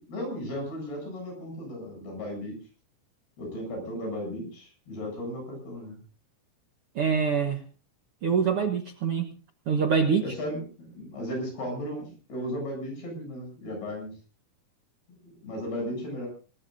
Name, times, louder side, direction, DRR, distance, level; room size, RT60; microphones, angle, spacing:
voice 1, 0.1-2.6 3.4-6.0 10.2-14.1 15.2-16.3, equal, 90° left, 2 dB, 10.0 m, -35 dB
voice 2, 6.9-7.6 8.2-9.3 9.7-10.2, right 6 dB, 65° right, 5 dB, 1.4 m, -24 dB
27.5 x 17.5 x 2.7 m, 0.36 s
omnidirectional pair, 4.4 m